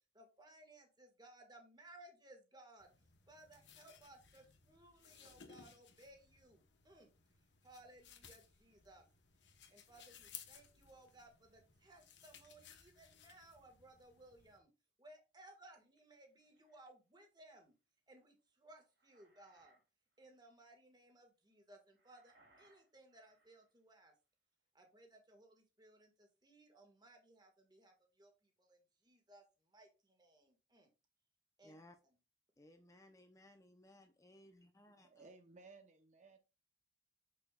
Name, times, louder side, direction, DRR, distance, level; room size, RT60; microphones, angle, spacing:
voice 1, 0.1-7.1 7.6-9.0 9.5-14.7 15.0-17.7 18.1-19.8 20.2-24.1 24.7-30.9 31.6-31.8, right 1 dB, 25° right, 1.6 m, -62 dB
sound 1, 2.8-14.6, left 8 dB, 80° left, 1.1 m, -60 dB
sound 2, 16.0-16.9 18.7-19.8 20.1-20.4 21.9-23.7, right 2 dB, 80° right, 3.5 m, -72 dB
voice 2, 31.6-32.0 32.6-35.2, left 1 dB, 20° left, 0.7 m, -62 dB
voice 3, 35.0-36.4, right 3 dB, 40° right, 0.8 m, -59 dB
6.7 x 6.3 x 2.4 m
head